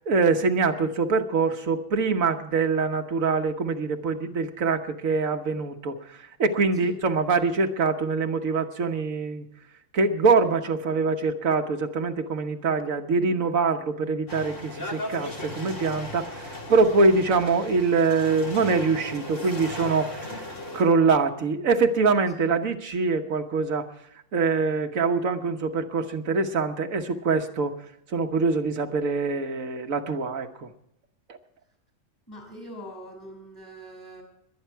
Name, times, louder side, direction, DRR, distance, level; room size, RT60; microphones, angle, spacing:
voice 1, 0.0-9.4 9.9-23.9 24.3-27.7 28.1-30.7, right 4 dB, 80° right, 5 dB, 1.5 m, -24 dB
sound 1, 14.3-20.8, left 1 dB, 65° left, 3.1 m, -37 dB
voice 2, 32.3-34.2, equal, 15° left, 4 dB, 6.0 m, -42 dB
22.0 x 9.3 x 4.5 m, 0.77 s
omnidirectional pair, 1.4 m